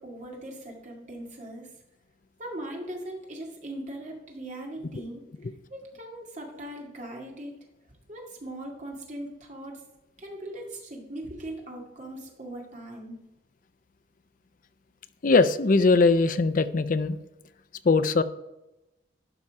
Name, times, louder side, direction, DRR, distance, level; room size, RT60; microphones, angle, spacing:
voice 1, 0.0-1.7 2.4-5.3 5.7-7.5 8.1-9.8 10.2-13.2, right 1 dB, 40° right, 0 dB, 2.1 m, -39 dB
voice 2, 15.2-17.2 17.8-18.2, left 3 dB, 45° left, 12 dB, 0.5 m, -21 dB
12.0 x 5.5 x 4.8 m, 0.96 s
head